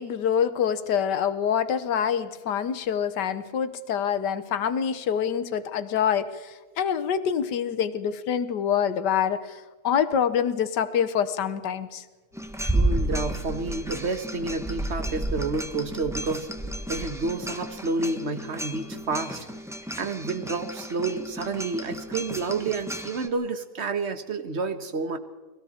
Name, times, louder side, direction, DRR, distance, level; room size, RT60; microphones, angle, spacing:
voice 1, 0.0-9.6 9.8-12.0, left 8 dB, 85° left, 12 dB, 1.6 m, -26 dB
sound 1, 12.3-23.3, right 1 dB, ahead, 1.1 m, -32 dB
voice 2, 12.6-16.5 16.9-19.5 20.0-25.2, right 3 dB, 45° right, 9 dB, 1.5 m, -29 dB
30.0 x 20.5 x 4.3 m, 1.3 s
omnidirectional pair, 1.8 m